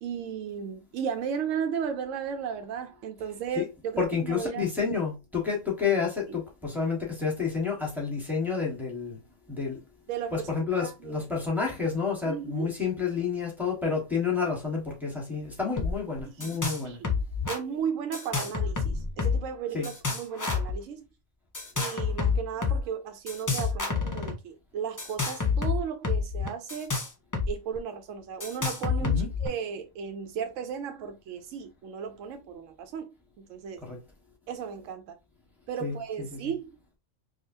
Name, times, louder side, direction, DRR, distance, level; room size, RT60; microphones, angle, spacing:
voice 1, 0.0-4.7 10.1-11.3 12.2-12.7 16.4-17.1 17.5-21.0 21.8-26.9 27.5-33.8 34.5-35.2 35.7-37.0, right 7 dB, 80° right, 0.9 m, -35 dB
voice 2, 4.0-9.2 9.5-9.8 10.3-17.0 19.7-19.9 29.0-29.3 33.8-34.0 35.8-36.5, left 5 dB, ahead, 1.2 m, -30 dB
sound 1, 15.8-15.9 16.2-16.8 17.0-17.6 18.1-19.5 19.8-20.8 21.5-22.8 23.3-24.3 25.0-27.5 27.8-27.9 28.4-29.5, left 5 dB, 20° left, 0.5 m, -28 dB
4.9 x 2.3 x 2.6 m
omnidirectional pair, 1.3 m